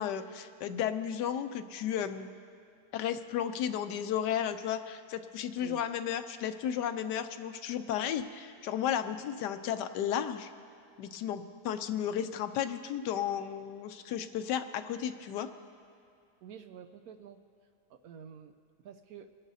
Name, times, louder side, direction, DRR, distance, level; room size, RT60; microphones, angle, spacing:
voice 1, 0.0-2.3 2.9-10.5 11.0-15.5, left 9 dB, 80° left, 9 dB, 1.2 m, -33 dB
voice 2, 16.4-17.4 18.0-18.5 18.8-19.3, right 8 dB, 70° right, 8 dB, 0.9 m, -48 dB
27.5 x 11.0 x 2.7 m, 2.5 s
omnidirectional pair, 1.8 m